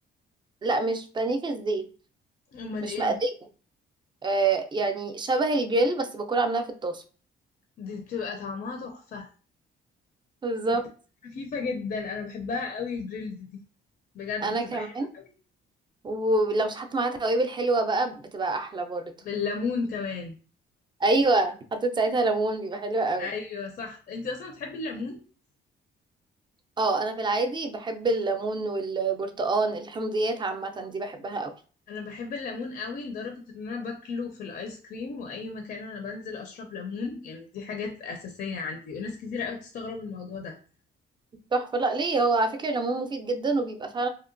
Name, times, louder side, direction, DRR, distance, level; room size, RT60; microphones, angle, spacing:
voice 1, 0.6-1.9 2.8-3.3 4.2-7.0 10.4-10.8 14.4-15.1 16.0-19.1 21.0-23.3 26.8-31.5 41.5-44.1, right 2 dB, 25° right, 8 dB, 0.4 m, -26 dB
voice 2, 2.5-3.2 7.8-9.3 10.7-10.8 11.2-13.6 14.1-15.3 19.2-20.4 23.2-25.2 31.9-40.6, left 4 dB, 50° left, 3 dB, 0.5 m, -34 dB
2.8 x 2.1 x 2.5 m, 0.39 s
cardioid pair, 90°, 20 cm